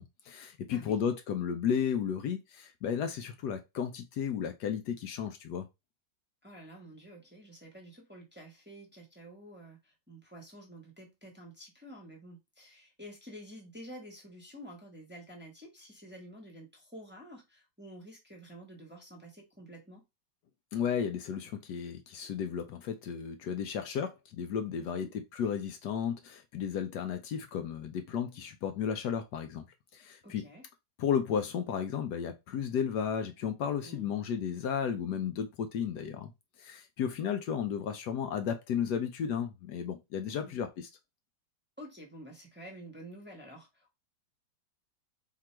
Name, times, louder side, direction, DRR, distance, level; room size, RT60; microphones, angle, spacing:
voice 1, 0.0-5.7 20.7-25.1 25.3-29.7 29.9-30.4 31.0-36.3 36.6-40.9, left 8 dB, 75° left, 1.2 m, -33 dB
voice 2, 6.4-20.0 24.8-25.1 30.2-30.6 33.8-34.1 40.2-40.6 41.8-43.9, equal, 5° right, 1.0 m, -50 dB
3.7 x 2.8 x 4.4 m
omnidirectional pair, 1.9 m